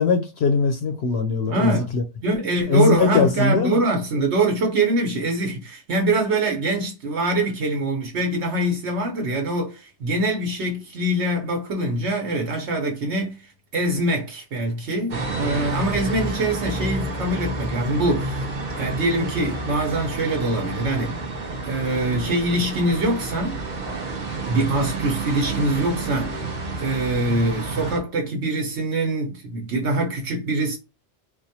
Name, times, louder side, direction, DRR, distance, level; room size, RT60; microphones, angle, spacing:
voice 1, 0.0-2.0 2.7-3.8, left 4 dB, 65° left, 0.8 m, -20 dB
voice 2, 1.5-1.9 2.2-18.5 18.7-21.2 21.6-23.6 24.4-26.5 26.8-30.8, right 2 dB, 70° right, 1.1 m, -24 dB
sound 1, 15.1-28.0, right 2 dB, 45° right, 0.9 m, -29 dB
4.2 x 2.2 x 2.8 m
omnidirectional pair, 1.2 m